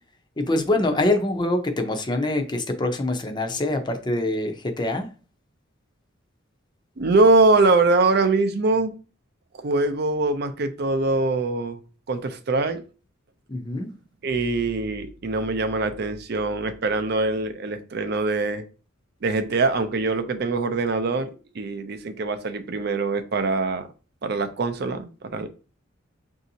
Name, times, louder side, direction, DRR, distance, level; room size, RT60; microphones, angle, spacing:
voice 1, 0.4-5.1 13.5-13.9, left 2 dB, 20° left, 0.5 m, -24 dB
voice 2, 7.0-8.9 9.5-11.8 12.1-12.8 14.2-18.6 19.2-23.9 24.2-25.5, right 3 dB, 50° right, 0.5 m, -23 dB
6.0 x 2.7 x 2.7 m
head